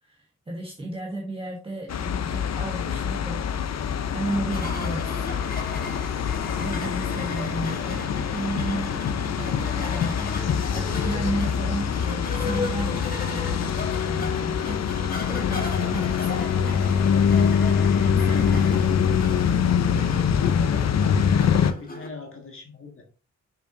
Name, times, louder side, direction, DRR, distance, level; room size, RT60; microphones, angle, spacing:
voice 1, 0.0-5.3 6.6-17.7 18.2-18.9, right 1 dB, 20° right, 0 dB, 1.2 m, -34 dB
sound 1, 1.9-21.7, left 7 dB, 60° left, 0.6 m, -24 dB
sound 2, 4.3-22.1, left 2 dB, 30° left, 1.7 m, -37 dB
voice 2, 19.1-20.9 21.6-23.0, left 4 dB, 45° left, 1 dB, 1.7 m, -43 dB
6.7 x 5.6 x 2.6 m, 0.35 s
wide cardioid pair, 125°, 30 cm